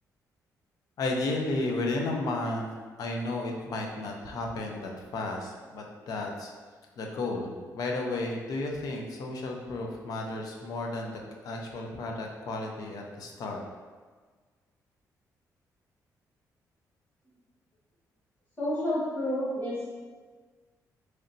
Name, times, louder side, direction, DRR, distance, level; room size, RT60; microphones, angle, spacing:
voice 1, 1.0-2.7 3.0-6.5 7.0-13.6, left 2 dB, 65° left, 1 dB, 0.6 m, -33 dB
voice 2, 18.6-19.9, left 1 dB, 25° left, -7 dB, 1.0 m, -30 dB
3.9 x 3.2 x 2.6 m, 1.5 s
cardioid pair, 145°, 7 cm